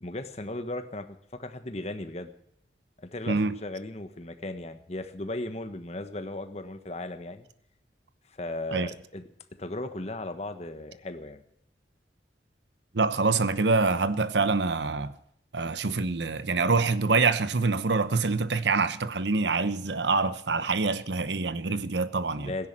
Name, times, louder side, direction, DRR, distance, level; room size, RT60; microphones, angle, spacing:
voice 1, 0.0-2.3 3.0-7.5 8.3-9.2 9.6-11.4 22.4-22.7, left 2 dB, 35° left, 1.3 m, -36 dB
voice 2, 12.9-15.1 15.5-22.5, right 4 dB, 75° right, 0.9 m, -25 dB
16.5 x 10.5 x 7.5 m
head